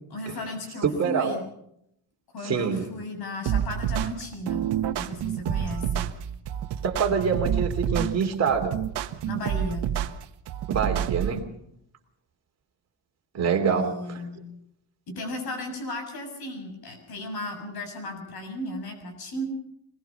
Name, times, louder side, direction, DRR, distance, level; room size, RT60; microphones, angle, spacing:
voice 1, 0.1-1.4 2.3-4.7 5.0-6.1 9.3-9.9 13.7-14.4 15.1-19.4, left 1 dB, 60° left, 5 dB, 7.0 m, -35 dB
voice 2, 0.8-1.4 2.4-2.9 6.8-8.8 10.7-11.4 13.3-14.2, right 6 dB, 35° right, 4 dB, 3.0 m, -25 dB
sound 1, 3.5-11.4, right 10 dB, 70° right, 1.3 m, -28 dB
23.0 x 21.0 x 5.7 m, 0.75 s
cardioid pair, 170°, 43 cm